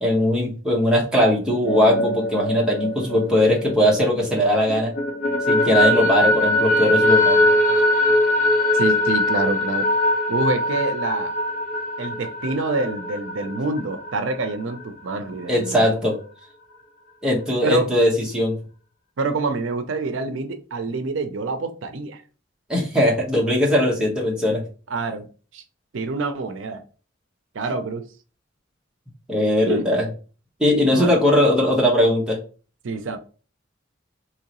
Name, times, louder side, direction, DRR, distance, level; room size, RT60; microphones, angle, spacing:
voice 1, 0.0-4.9 5.5-7.4 15.5-16.2 17.2-18.6 22.7-24.6 29.3-30.0 30.6-32.4, left 1 dB, 5° right, 1.1 m, -19 dB
sound 1, 1.5-4.3 4.7-14.1, left 1 dB, 45° left, 0.8 m, -21 dB
voice 2, 8.7-9.9 10.3-11.3 12.0-15.9 17.6-17.9 19.2-22.2 24.9-25.3 25.5-25.6 25.9-26.8 27.5-28.0 29.7-29.9 30.9-31.2 32.8-33.2, right 3 dB, 80° right, 0.5 m, -26 dB
3.7 x 3.0 x 2.9 m
head